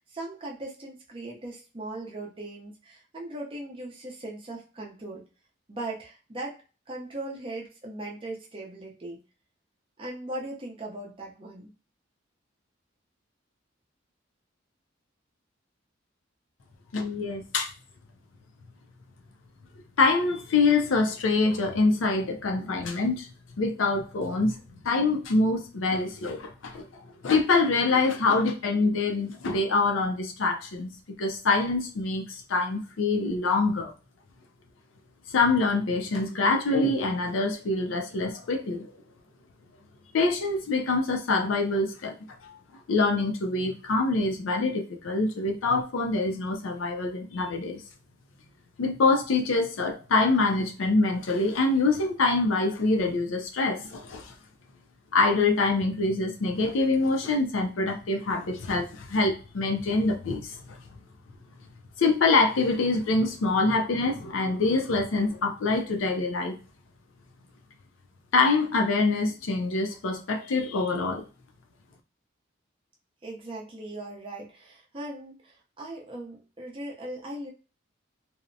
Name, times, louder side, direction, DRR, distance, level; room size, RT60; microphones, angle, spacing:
voice 1, 0.1-5.2 5.7-6.6 6.9-9.2 10.0-11.7 73.2-77.5, right 1 dB, 25° right, 0.6 m, -39 dB
voice 2, 16.9-17.7 20.0-23.3 23.6-24.6 24.8-26.9 27.2-30.9 31.2-33.9 35.3-38.9 40.1-42.1 42.4-42.6 42.9-47.8 48.8-54.3 55.1-60.8 62.0-66.5 68.3-71.2, left 3 dB, 80° left, 0.5 m, -25 dB
2.6 x 2.0 x 2.5 m
head